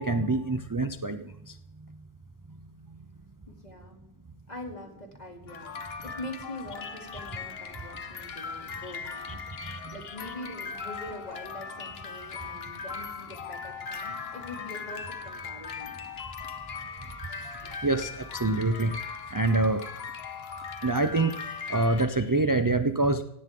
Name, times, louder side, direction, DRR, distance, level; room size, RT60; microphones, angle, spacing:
voice 1, 0.0-1.5 9.6-10.1 17.6-18.9 19.3-19.8 20.8-21.3 21.7-23.2, right 2 dB, 25° right, 9 dB, 0.6 m, -26 dB
voice 2, 3.5-4.0 4.5-5.7 6.0-15.9, left 1 dB, 40° left, 1 dB, 3.3 m, -43 dB
sound 1, 5.5-22.1, left 5 dB, 75° left, 1.3 m, -39 dB
17.0 x 17.0 x 3.8 m, 0.82 s
omnidirectional pair, 1.0 m